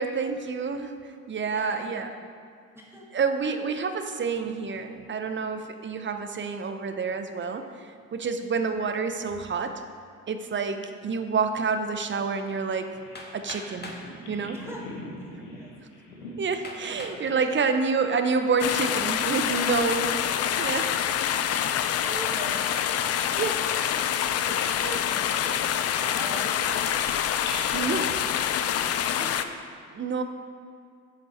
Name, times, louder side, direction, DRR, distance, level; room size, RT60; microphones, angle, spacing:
voice 1, 0.0-2.1 3.1-9.8 10.3-13.0 13.3-13.9 14.3-14.6 16.4-20.1 20.4-20.9 23.3-23.6 24.5-25.0 27.7-28.2 29.9-30.2, right 5 dB, 30° right, 8 dB, 0.7 m, -28 dB
voice 2, 1.5-2.2 2.7-3.1 14.5-14.9 15.3-15.7 17.3-17.5 19.6-19.9 21.5-22.7 24.3-25.6 25.9-27.0 27.7-28.3 28.6-29.6, right 1 dB, 5° right, -3 dB, 2.0 m, -42 dB
Bird vocalization bird call bird song, 12.5-18.5 18.8-19.7 20.0-20.2 20.8-24.2 24.5-27.5, left 2 dB, 75° left, 1.4 m, -45 dB
Hammer, 13.2-14.1 15.0-15.1 15.7-15.8 16.6-17.2 17.8-18.3, left 2 dB, 25° left, 1.4 m, -41 dB
sound 1, 18.6-29.4, left 9 dB, 40° left, 0.5 m, -26 dB
7.4 x 7.2 x 4.4 m, 2.3 s
hypercardioid pair, 50°, 38 cm